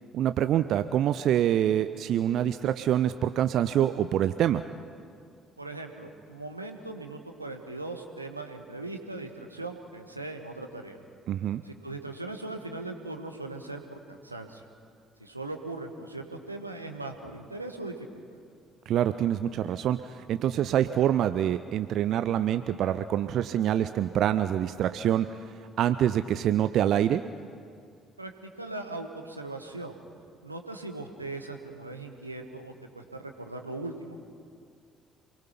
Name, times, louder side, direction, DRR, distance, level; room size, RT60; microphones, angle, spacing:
voice 1, 0.1-4.6 11.3-11.6 18.9-25.4 25.8-27.2, right 11 dB, 55° right, 11 dB, 0.5 m, -26 dB
voice 2, 5.6-11.0 11.6-14.6 15.2-18.2 28.2-30.0 30.4-34.2, right 2 dB, 85° right, 4 dB, 1.3 m, -39 dB
27.5 x 21.0 x 5.9 m, 2.3 s
figure-of-eight pair, 50°, 0 cm